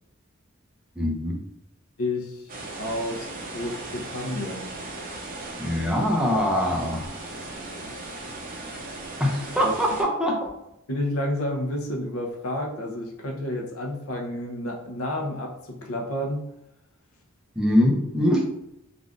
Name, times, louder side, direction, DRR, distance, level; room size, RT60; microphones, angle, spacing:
voice 1, 1.0-1.4 5.6-7.1 9.2-10.5 17.6-18.4, equal, 5° right, -1 dB, 0.5 m, -23 dB
voice 2, 2.0-2.5 2.8-4.8 9.6-9.7 10.9-16.5, left 1 dB, 85° left, 1 dB, 0.7 m, -30 dB
sound 1, 2.5-10.0, right 2 dB, 40° right, 0.7 m, -37 dB
3.5 x 2.5 x 2.3 m, 0.82 s
head